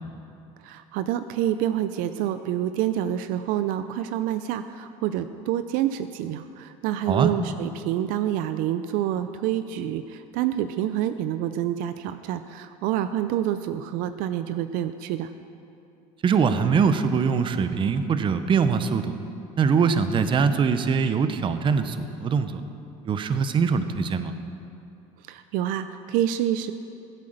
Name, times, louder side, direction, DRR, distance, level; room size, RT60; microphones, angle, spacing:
voice 1, 0.6-15.3 25.3-26.7, right 11 dB, 65° right, 11 dB, 0.5 m, -27 dB
voice 2, 16.2-19.1 19.6-22.6 23.0-24.3, right 6 dB, 35° right, 10 dB, 0.8 m, -22 dB
15.0 x 8.4 x 6.6 m, 2.6 s
supercardioid pair, 115°, 15 cm